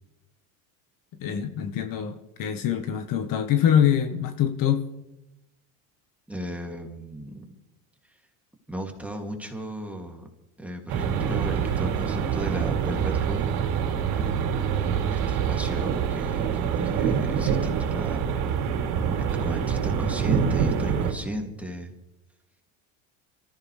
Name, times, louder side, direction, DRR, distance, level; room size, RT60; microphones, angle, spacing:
voice 1, 1.2-4.9, left 9 dB, 50° left, 1.5 m, -24 dB
voice 2, 6.3-7.6 8.7-10.3 10.6-13.5 14.1-14.5 14.8-16.5 16.8-18.2 19.2-21.9, right 1 dB, 5° right, 2.6 m, -35 dB
sound 1, 10.9-21.1, right 7 dB, 70° right, 2.9 m, -25 dB
25.5 x 14.5 x 3.4 m
supercardioid pair, 115°, 42 cm